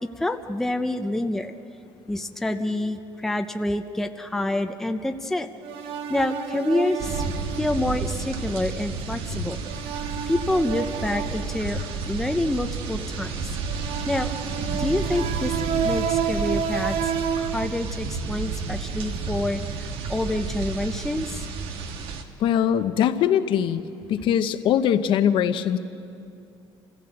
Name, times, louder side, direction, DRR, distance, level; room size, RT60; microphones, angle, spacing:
voice 1, 0.2-1.5 2.1-5.5 6.1-7.2 7.6-9.6 10.3-13.3 14.1-14.3 14.8-15.5 15.8-21.4, left 1 dB, 5° left, 6 dB, 0.6 m, -27 dB
sound 1, 5.6-8.1 9.6-12.0 13.6-17.7, right 7 dB, 90° right, 1.0 m, -30 dB
sound 2, 7.0-22.2, right 4 dB, 75° right, 1.6 m, -31 dB
voice 2, 22.4-25.8, left 9 dB, 60° left, 10 dB, 0.8 m, -22 dB
27.0 x 16.0 x 8.0 m, 2.6 s
cardioid pair, 170°, 10 cm